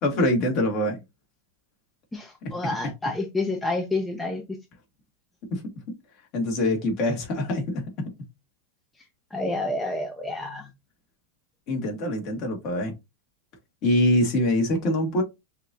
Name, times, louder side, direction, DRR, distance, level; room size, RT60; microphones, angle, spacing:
voice 1, 0.0-1.0 2.4-2.5 5.5-5.7 6.3-8.1 11.7-12.9 13.8-15.2, left 1 dB, 45° left, 1.9 m, -24 dB
voice 2, 2.1-4.4 9.3-10.7, left 2 dB, 10° left, 0.7 m, -29 dB
6.4 x 2.7 x 2.5 m
supercardioid pair, 145°, 0 cm